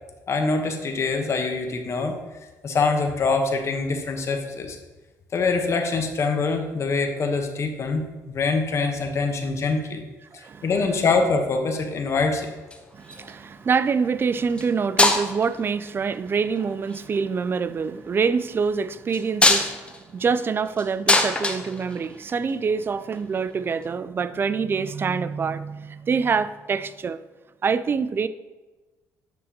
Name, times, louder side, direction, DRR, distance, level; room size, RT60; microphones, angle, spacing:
voice 1, 0.3-2.1 2.6-4.8 5.3-10.0 10.3-12.5, left 4 dB, 45° left, 1.0 m, -24 dB
voice 2, 10.3-10.7 12.9-27.2 27.6-28.3, right 5 dB, 35° right, 0.3 m, -25 dB
sound 1, 12.5-13.4 14.5-14.7 15.0-15.6 16.6-17.0 19.1-22.5 23.8-23.9, left 2 dB, 15° left, 0.8 m, -22 dB
7.8 x 6.5 x 2.9 m
cardioid pair, 95°, 7 cm